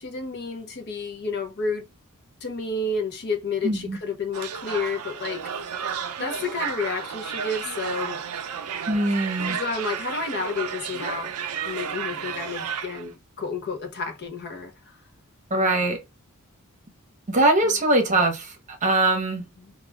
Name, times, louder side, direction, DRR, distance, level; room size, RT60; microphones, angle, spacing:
voice 1, 0.0-1.9 2.4-5.4 6.2-8.2 9.5-11.3 11.7-14.7 15.5-15.8 17.6-17.7 19.6-19.7, left 4 dB, 50° left, 0.6 m, -30 dB
voice 2, 3.6-4.0 8.9-9.6 15.5-16.0 17.3-19.4, right 2 dB, 35° right, 0.8 m, -22 dB
sound 1, 4.3-13.1, right 7 dB, 90° right, 0.5 m, -32 dB
2.3 x 2.2 x 3.2 m
head